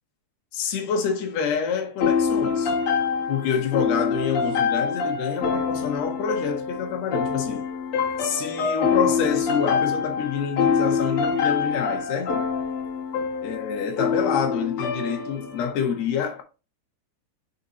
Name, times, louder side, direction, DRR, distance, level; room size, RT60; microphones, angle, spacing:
voice 1, 0.5-2.7 3.3-7.6 8.2-12.5 13.4-16.4, left 7 dB, 80° left, 1.5 m, -27 dB
sound 1, 2.0-15.7, left 6 dB, 60° left, 1.4 m, -25 dB
5.9 x 4.1 x 4.0 m
omnidirectional pair, 4.7 m